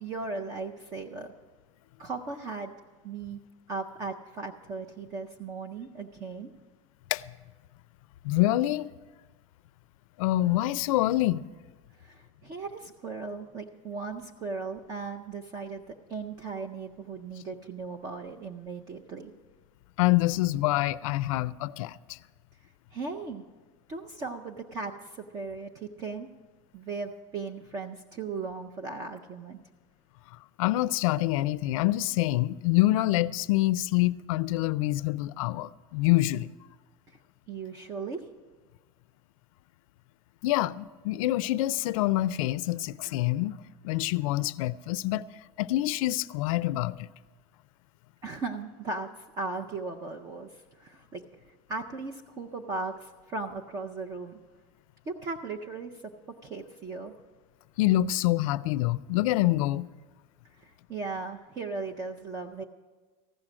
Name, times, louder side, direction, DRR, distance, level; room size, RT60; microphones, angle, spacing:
voice 1, 0.0-1.3 2.0-2.7 3.0-3.4 3.7-6.5 12.0-19.3 22.9-23.4 23.9-26.3 26.7-29.6 37.5-38.2 48.2-50.5 50.8-51.2 51.7-54.4 55.1-55.9 56.3-57.1 60.6-62.6, right 4 dB, 20° right, 0.4 m, -37 dB
voice 2, 8.2-8.9 10.2-11.4 20.0-22.2 30.6-36.5 40.4-43.5 43.8-45.2 45.6-47.1 57.8-59.9, left 16 dB, 85° left, 0.4 m, -26 dB
14.5 x 6.2 x 8.8 m
supercardioid pair, 175°, 17 cm